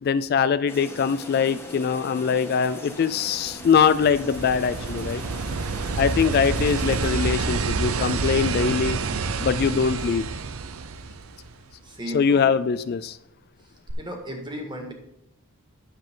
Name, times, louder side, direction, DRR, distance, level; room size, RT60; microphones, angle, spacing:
voice 1, 0.0-5.2 6.0-9.0 9.4-10.2 12.1-13.2, left 6 dB, 45° left, 14 dB, 0.3 m, -22 dB
sound 1, 0.7-7.1, left 1 dB, 10° left, 1.3 m, -41 dB
sound 2, 3.3-11.7 13.9-14.0, right 4 dB, 85° right, 0.6 m, -28 dB
voice 2, 11.8-12.5 14.0-14.9, equal, 20° right, 2 dB, 1.9 m, -35 dB
10.0 x 7.4 x 3.7 m, 0.86 s
head